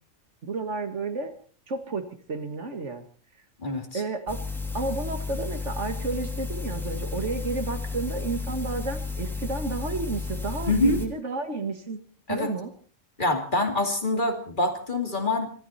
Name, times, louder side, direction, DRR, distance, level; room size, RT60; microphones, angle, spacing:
voice 1, 0.4-1.3 1.7-3.0 3.9-4.4 4.7-12.0 12.3-12.7, right 3 dB, 70° right, 7 dB, 2.2 m, -31 dB
voice 2, 3.6-4.0 10.7-11.0 12.3-12.5 13.2-15.5, left 2 dB, 40° left, 4 dB, 2.6 m, -25 dB
sound 1, 4.3-11.1, left 4 dB, ahead, 2.2 m, -33 dB
25.5 x 13.0 x 4.3 m, 0.43 s
omnidirectional pair, 1.3 m